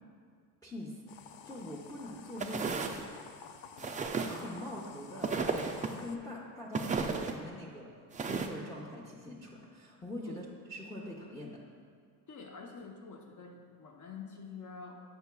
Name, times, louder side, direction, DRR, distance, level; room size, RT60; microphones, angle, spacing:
voice 1, 0.6-1.0 1.4-3.0 3.8-7.9 8.2-11.6, left 1 dB, 10° left, -4 dB, 0.8 m, -44 dB
sound 1, 1.1-6.2, left 7 dB, 80° left, 0.5 m, -51 dB
sound 2, 2.4-3.0 3.8-4.4 5.2-5.9 6.7-7.3 8.1-8.5, right 5 dB, 20° right, 0.3 m, -33 dB
voice 2, 12.3-15.0, left 5 dB, 40° left, 2 dB, 0.9 m, -47 dB
7.9 x 5.7 x 2.3 m, 2.1 s
supercardioid pair, 75°, 45 cm